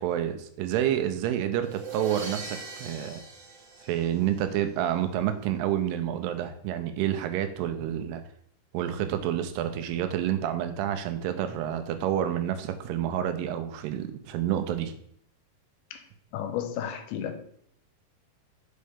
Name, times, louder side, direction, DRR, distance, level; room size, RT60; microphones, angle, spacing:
voice 1, 0.0-3.2 3.8-8.2 8.7-14.9, right 10 dB, 90° right, 2.7 m, -29 dB
sound 1, 1.6-4.6, right 5 dB, 60° right, 2.4 m, -40 dB
voice 2, 16.3-17.4, left 9 dB, 80° left, 2.5 m, -33 dB
5.6 x 5.3 x 5.0 m
omnidirectional pair, 4.7 m